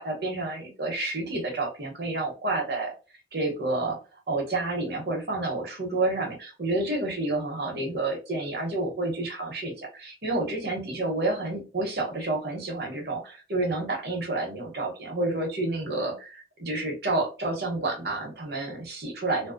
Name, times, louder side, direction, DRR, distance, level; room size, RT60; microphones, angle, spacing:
voice 1, 0.0-2.9 3.3-4.0 4.3-19.5, right 2 dB, 65° right, 0 dB, 1.0 m, -29 dB
2.7 x 2.0 x 2.4 m, 0.33 s
head